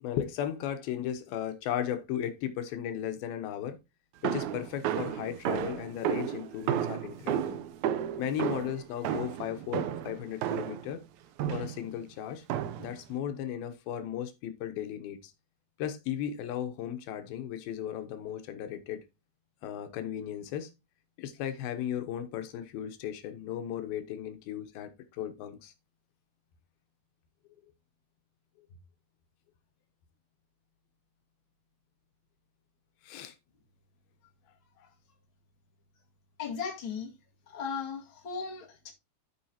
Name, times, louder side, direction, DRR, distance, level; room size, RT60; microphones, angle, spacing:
voice 1, 0.0-3.8 4.2-7.6 8.2-11.0 11.5-12.4 12.8-15.3 15.8-19.0 19.6-20.7 21.2-24.9 25.2-25.7 33.0-33.3, left 10 dB, 85° left, 2.8 m, -36 dB
sound 1, 4.2-10.9 11.4-11.9 12.5-13.0, right 10 dB, 85° right, 1.7 m, -32 dB
voice 2, 36.4-37.1 37.5-38.9, left 6 dB, 40° left, 2.3 m, -36 dB
14.0 x 4.7 x 2.8 m
omnidirectional pair, 4.2 m